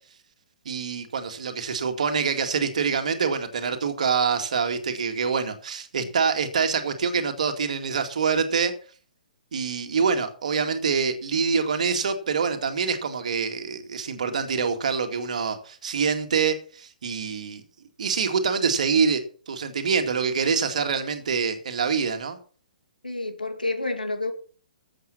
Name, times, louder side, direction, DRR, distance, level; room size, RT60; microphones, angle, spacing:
voice 1, 0.7-8.7 9.5-17.6 18.0-22.4, right 5 dB, 55° right, 7 dB, 2.2 m, -25 dB
voice 2, 23.0-24.3, left 2 dB, 80° left, 7 dB, 2.4 m, -29 dB
12.5 x 8.1 x 5.9 m, 0.41 s
figure-of-eight pair, 125°, 5 cm